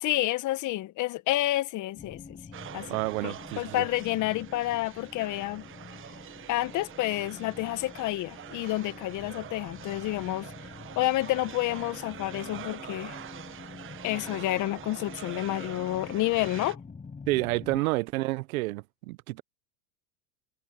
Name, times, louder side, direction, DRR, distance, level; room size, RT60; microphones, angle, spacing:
voice 1, 0.0-2.4 2.7-2.9 3.2-5.7 6.5-10.5 10.9-13.2 14.0-16.8, left 16 dB, 45° left, 1.4 m, -29 dB
sound 1, 1.9-17.8, left 5 dB, 15° left, 6.4 m, -47 dB
sound 2, 2.5-16.7, right 11 dB, 30° right, 1.1 m, -45 dB
voice 2, 2.9-3.8 17.3-19.4, right 20 dB, 75° right, 1.0 m, -29 dB
supercardioid pair, 120°, 42 cm